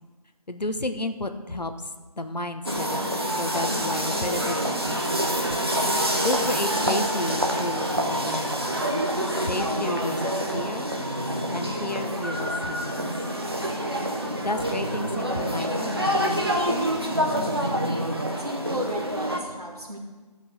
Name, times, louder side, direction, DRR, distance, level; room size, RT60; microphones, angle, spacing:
voice 1, 0.5-1.7 2.1-5.3 6.2-8.8 9.5-10.9 11.5-13.1 14.4-16.9, left 2 dB, 75° left, 8 dB, 1.0 m, -32 dB
sound 1, 2.6-19.4, equal, 35° right, 1.0 m, -26 dB
voice 2, 18.4-20.0, equal, 65° right, -1 dB, 1.7 m, -34 dB
12.5 x 5.5 x 6.1 m, 1.4 s
figure-of-eight pair, 175°, 21 cm